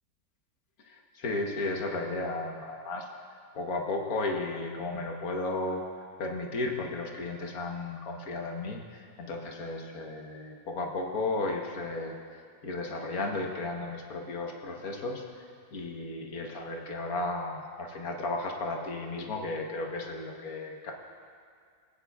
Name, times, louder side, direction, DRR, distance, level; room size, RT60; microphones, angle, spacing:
voice 1, 0.8-3.1 3.5-5.8 6.2-12.1 12.6-15.4 15.7-20.9, left 2 dB, 60° left, 1 dB, 1.5 m, -34 dB
22.0 x 8.9 x 2.3 m, 2.2 s
omnidirectional pair, 1.8 m